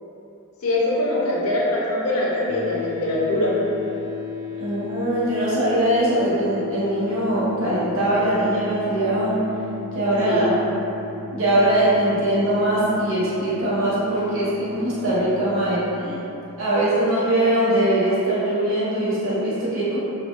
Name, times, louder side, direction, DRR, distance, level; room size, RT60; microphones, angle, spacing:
voice 1, 0.6-3.5 10.3-10.5, left 1 dB, 80° left, -5 dB, 0.6 m, -23 dB
sound 1, 2.5-16.0, left 6 dB, 30° left, 0.6 m, -36 dB
voice 2, 4.6-9.3 9.9-10.5 11.3-16.2 16.6-20.0, right 1 dB, 65° right, -10 dB, 0.8 m, -21 dB
2.3 x 2.3 x 2.9 m, 2.9 s
head